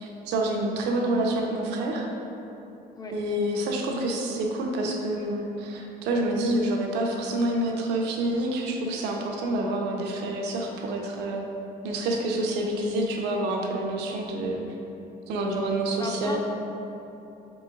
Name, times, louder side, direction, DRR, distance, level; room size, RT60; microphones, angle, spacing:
voice 1, 0.0-2.1 3.1-11.4 11.8-14.6 15.3-16.4, right 1 dB, 85° right, 1 dB, 0.6 m, -27 dB
voice 2, 15.6-16.4, left 2 dB, 25° left, 1 dB, 0.5 m, -37 dB
3.8 x 3.7 x 3.8 m, 3.0 s
cardioid pair, 110°, 17 cm